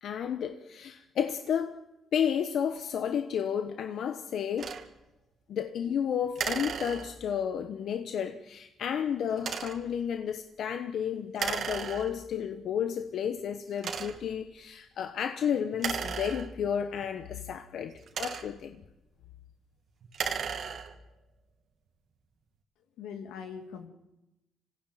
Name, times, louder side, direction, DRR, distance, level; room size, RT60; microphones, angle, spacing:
voice 1, 0.0-1.8 2.1-4.7 5.5-18.8, left 8 dB, 70° left, 1.2 m, -32 dB
sound 1, 4.6-4.9 6.4-7.4 9.4-9.9 11.4-12.4 13.0-13.1 13.8-14.4 15.7-16.9 17.8-18.7 20.0-21.1, right 6 dB, 60° right, 2.3 m, -35 dB
voice 2, 23.0-23.9, left 7 dB, 90° left, 2.6 m, -41 dB
26.5 x 16.5 x 9.1 m
cardioid pair, 90°, 0 cm